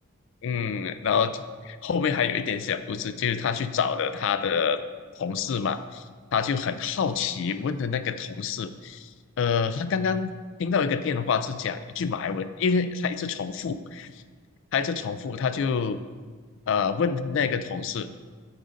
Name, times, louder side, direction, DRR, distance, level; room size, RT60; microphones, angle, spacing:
voice 1, 0.4-4.8 5.2-6.0 6.3-9.1 9.4-10.3 10.6-14.1 14.7-16.0 16.7-18.1, left 6 dB, 55° left, 11 dB, 0.3 m, -27 dB
8.9 x 3.9 x 5.0 m, 1.5 s
head